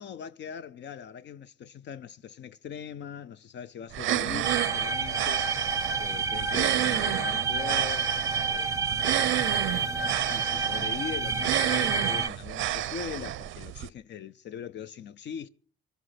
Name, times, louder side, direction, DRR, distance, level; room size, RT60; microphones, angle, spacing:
voice 1, 0.0-5.5 6.0-8.2 8.5-15.5, left 8 dB, 65° left, 0.6 m, -41 dB
sound 1, 3.9-13.9, right 13 dB, 85° right, 0.6 m, -31 dB
sound 2, 4.4-12.3, right 5 dB, 15° right, 0.6 m, -29 dB
24.0 x 8.1 x 5.8 m
cardioid pair, 90°, 20 cm